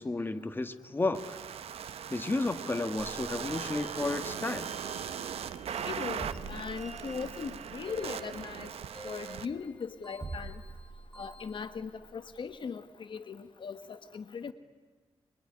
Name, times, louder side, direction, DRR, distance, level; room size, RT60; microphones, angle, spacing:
voice 1, 0.0-1.4 2.1-4.7, left 2 dB, 20° left, 8 dB, 1.6 m, -32 dB
sound 1, 1.1-9.5, right 8 dB, 90° right, 1.1 m, -39 dB
sound 2, 2.9-11.7, right 1 dB, 5° left, 8.0 m, -52 dB
sound 3, 5.2-12.6, right 3 dB, 35° right, 3.6 m, -48 dB
voice 2, 5.8-8.7 9.0-10.6 11.2-14.5, left 5 dB, 55° left, 10 dB, 1.4 m, -39 dB
26.0 x 23.0 x 10.0 m, 1.4 s
wide cardioid pair, 110°, 10 cm